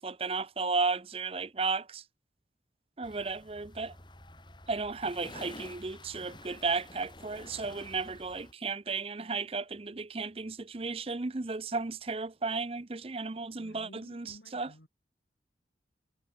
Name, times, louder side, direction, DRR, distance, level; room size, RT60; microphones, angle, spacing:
voice 1, 0.0-2.0 3.0-3.9 4.7-14.7, right 4 dB, 30° right, 0.6 m, -34 dB
sound 1, 3.0-8.5, left 2 dB, 25° left, 5.9 m, -50 dB
voice 2, 13.5-14.9, left 1 dB, 80° left, 5.9 m, -54 dB
head